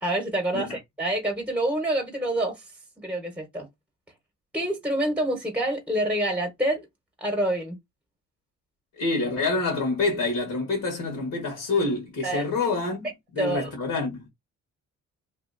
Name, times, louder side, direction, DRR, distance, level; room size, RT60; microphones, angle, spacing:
voice 1, 0.0-2.6 3.0-3.7 4.5-6.9 7.2-7.8 12.2-12.4 13.4-13.7, right 1 dB, 5° right, 1.0 m, -27 dB
voice 2, 9.0-13.1 13.3-14.2, left 3 dB, 75° left, 1.5 m, -27 dB
2.8 x 2.5 x 2.6 m
cardioid pair, 90°, 30 cm